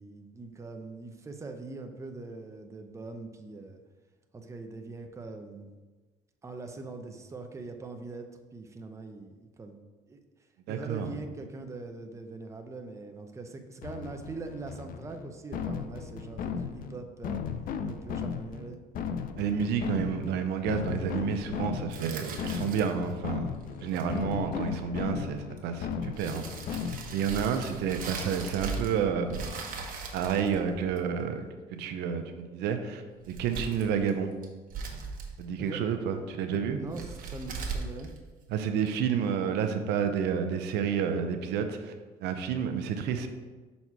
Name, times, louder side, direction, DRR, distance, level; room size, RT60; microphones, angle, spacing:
voice 1, 0.0-3.8 4.3-5.7 6.4-8.3 8.5-9.8 10.1-10.2 10.7-17.4 17.9-18.8 23.9-24.1 35.6-35.8 36.5-38.1, right 3 dB, 15° right, 5 dB, 0.6 m, -42 dB
voice 2, 10.7-11.1 19.4-23.5 23.8-26.4 26.7-26.8 27.1-29.4 30.1-31.4 31.7-34.3 35.4-36.8 38.5-41.9 42.2-43.3, right 7 dB, 85° right, 7 dB, 0.6 m, -30 dB
sound 1, 13.8-27.3, left 6 dB, 55° left, 0.4 m, -36 dB
sound 2, 21.9-23.1 23.8-24.2 25.6-25.7 26.2-29.0 29.3-31.2 33.1-34.1 34.4-35.5 36.8-38.9, right 4 dB, 55° right, 1.1 m, -39 dB
6.0 x 4.2 x 4.6 m, 1.3 s
cardioid pair, 110°, 17 cm